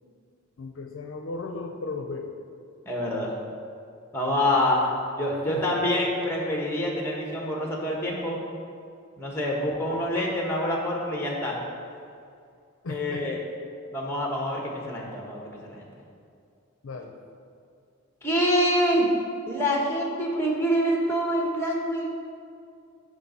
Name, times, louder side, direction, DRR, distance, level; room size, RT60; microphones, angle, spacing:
voice 1, 0.6-2.3 4.2-4.8 5.5-5.8 12.8-13.4 16.8-17.1, left 3 dB, 65° left, 4 dB, 0.5 m, -36 dB
voice 2, 2.8-3.3 4.1-8.4 9.2-11.6 12.9-13.4 13.9-15.8 18.2-19.1 19.5-22.1, equal, 10° left, -1 dB, 1.0 m, -26 dB
6.5 x 5.0 x 5.4 m, 2.4 s
head